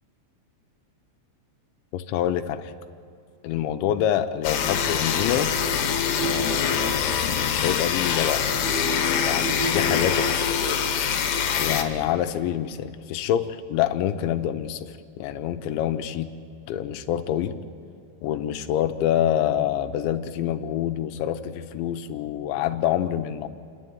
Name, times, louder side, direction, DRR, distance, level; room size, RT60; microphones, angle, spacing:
voice 1, 1.9-2.7 3.4-5.5 6.2-8.5 9.2-10.5 11.6-16.3 16.7-17.6 18.2-23.5, left 11 dB, 85° left, 8 dB, 3.0 m, -26 dB
sound 1, 4.4-11.8, left 7 dB, 65° left, 2.7 m, -24 dB
28.0 x 10.5 x 9.2 m, 2.3 s
omnidirectional pair, 5.5 m